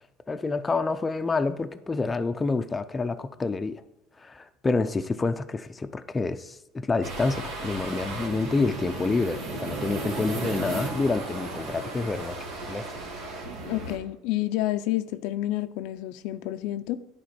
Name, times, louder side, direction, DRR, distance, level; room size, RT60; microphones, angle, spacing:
voice 1, 0.3-3.8 4.2-12.4 12.7-12.9, left 3 dB, 15° left, 0.5 m, -28 dB
sound 1, 7.0-14.0, right 3 dB, 80° right, 2.6 m, -35 dB
voice 2, 13.6-17.0, left 15 dB, 70° left, 0.5 m, -29 dB
10.5 x 4.5 x 4.3 m
supercardioid pair, 115°, 0 cm